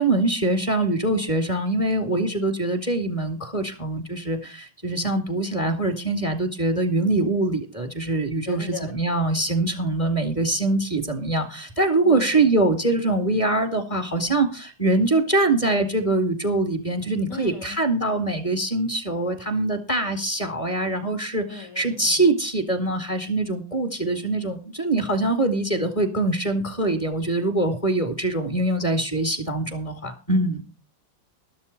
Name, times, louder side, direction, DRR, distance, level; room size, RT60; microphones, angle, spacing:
voice 1, 0.0-30.6, right 2 dB, 15° left, 6 dB, 2.1 m, -23 dB
voice 2, 8.5-8.9 12.0-12.4 17.3-17.8 21.5-22.3, left 7 dB, 40° left, 4 dB, 2.8 m, -38 dB
13.0 x 12.5 x 4.2 m, 0.33 s
omnidirectional pair, 2.4 m